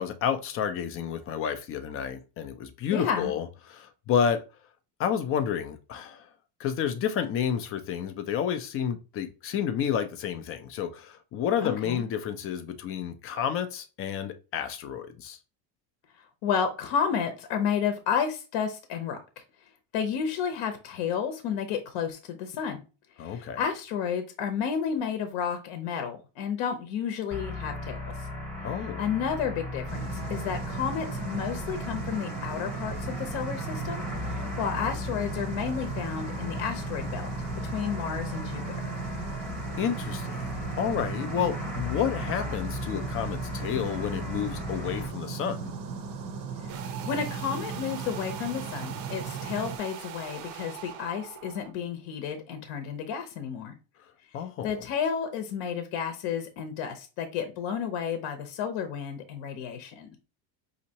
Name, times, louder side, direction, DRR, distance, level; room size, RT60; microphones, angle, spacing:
voice 1, 0.0-4.4 5.0-6.3 6.6-15.4 23.2-23.6 28.6-29.0 39.8-45.7 54.3-54.8, left 8 dB, 30° left, 0.3 m, -30 dB
voice 2, 2.9-3.3 11.6-12.0 16.4-19.2 19.9-22.8 23.2-28.0 29.0-37.3 37.7-39.0 46.7-53.7 54.6-60.1, left 7 dB, 60° left, 0.8 m, -31 dB
sound 1, 27.3-45.1, left 2 dB, ahead, 0.8 m, -37 dB
sound 2, 29.9-49.8, right 5 dB, 45° right, 0.6 m, -37 dB
sound 3, 46.7-51.7, right 9 dB, 85° right, 0.9 m, -42 dB
5.2 x 2.8 x 2.8 m
cardioid pair, 145°, 50 cm